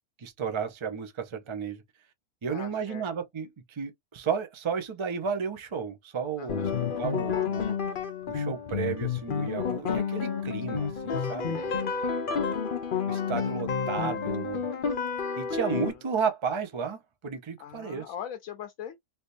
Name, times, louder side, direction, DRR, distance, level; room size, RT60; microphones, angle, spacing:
voice 1, 0.2-1.8 2.4-6.6 7.0-7.8 8.3-11.7 13.1-14.7 15.4-18.0, right 6 dB, 35° right, 0.4 m, -33 dB
voice 2, 2.5-3.1 6.4-6.9 11.5-12.2 15.8-16.0 17.6-19.0, left 9 dB, 70° left, 1.0 m, -42 dB
sound 1, 6.5-15.9, left 6 dB, 55° left, 0.6 m, -30 dB
3.4 x 2.8 x 2.6 m
omnidirectional pair, 1.5 m